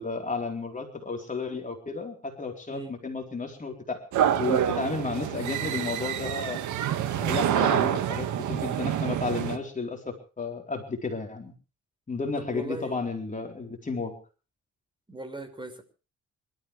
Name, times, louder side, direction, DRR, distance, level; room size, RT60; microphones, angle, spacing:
voice 1, 0.0-4.0 4.4-6.6 7.2-11.5 12.1-14.1, left 4 dB, 25° left, 2 dB, 4.1 m, -33 dB
sound 1, 4.1-9.6, right 10 dB, 80° right, 2.0 m, -27 dB
voice 2, 12.4-13.0 15.1-15.8, right 2 dB, 15° right, 8 dB, 5.6 m, -38 dB
26.5 x 13.5 x 3.4 m, 0.36 s
cardioid pair, 90°, 30 cm